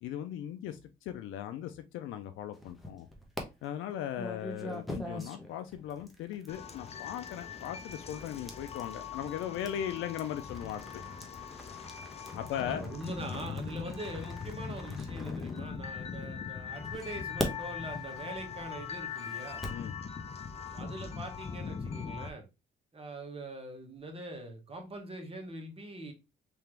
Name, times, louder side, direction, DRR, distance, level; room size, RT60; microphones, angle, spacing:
voice 1, 0.0-3.1 3.6-10.8 12.3-12.8 19.7-19.9, left 10 dB, 85° left, 0.4 m, -38 dB
sound 1, 2.5-3.4 4.1-16.2 16.8-19.9, equal, ahead, 0.9 m, -43 dB
sound 2, 6.5-22.3, left 6 dB, 30° left, 0.5 m, -41 dB
voice 2, 12.5-19.6 20.7-22.4 22.9-26.1, right 1 dB, 30° right, 1.3 m, -42 dB
3.4 x 2.9 x 3.3 m
cardioid pair, 90°, 20 cm